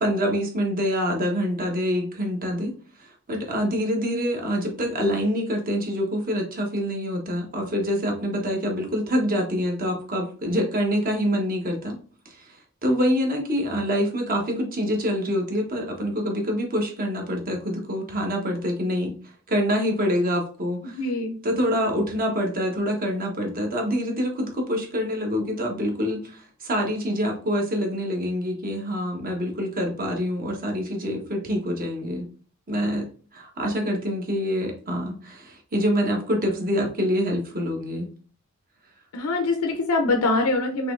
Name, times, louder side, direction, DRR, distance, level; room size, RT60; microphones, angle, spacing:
voice 1, 0.0-2.7 3.0-12.0 12.3-19.1 19.5-21.0 21.4-32.3 32.7-33.1 33.3-38.1, equal, 40° right, 1 dB, 1.2 m, -26 dB
voice 2, 21.0-21.4 39.1-40.9, left 2 dB, 85° left, 5 dB, 0.7 m, -23 dB
5.8 x 3.0 x 2.5 m, 0.40 s
head